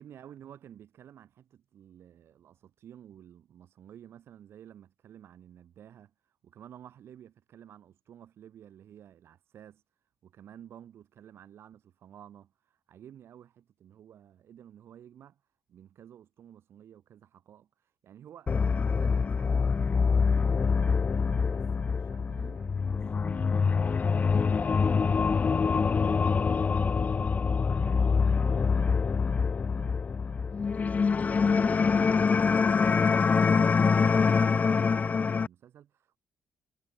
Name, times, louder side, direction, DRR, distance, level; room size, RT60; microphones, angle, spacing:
voice 1, 0.0-9.8 10.2-15.4 15.7-18.5 18.8-19.8 20.1-23.9 24.5-27.4 27.7-32.5 32.8-36.2, right 10 dB, 65° right, 2.7 m, -53 dB
sound 1, 18.5-35.5, left 5 dB, 35° left, 0.5 m, -25 dB
cardioid pair, 70°, 4 cm